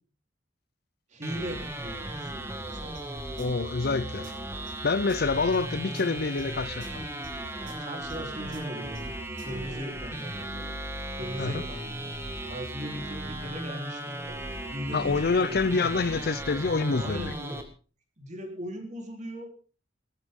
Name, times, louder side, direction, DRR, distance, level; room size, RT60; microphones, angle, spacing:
voice 1, 1.1-2.3 2.6-3.1 4.1-4.3 7.7-10.7 11.1-12.1 12.5-14.4 14.7-16.2 17.0-17.6 18.2-19.5, equal, 40° right, 3.8 m, -39 dB
sound 1, 1.2-17.6, right 1 dB, 15° right, 2.1 m, -36 dB
sound 2, 2.9-9.6, right 2 dB, 80° right, 4.7 m, -48 dB
voice 2, 3.4-4.3 4.8-7.0 11.4-11.6 14.9-17.3, left 4 dB, 55° left, 0.6 m, -27 dB
19.0 x 13.5 x 3.7 m
head